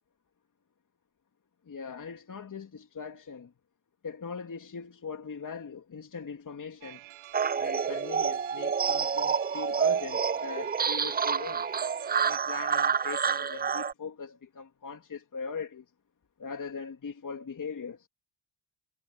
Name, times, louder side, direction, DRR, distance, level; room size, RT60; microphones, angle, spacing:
voice 1, 1.7-3.5 4.0-7.0 7.6-11.6 12.2-15.8 16.4-18.1, left 5 dB, 40° left, 3.0 m, -40 dB
sound 1, 6.8-12.4, right 14 dB, 70° right, 1.3 m, -48 dB
sound 2, 7.3-13.9, right 6 dB, 20° right, 0.5 m, -28 dB
supercardioid pair, 65°, 48 cm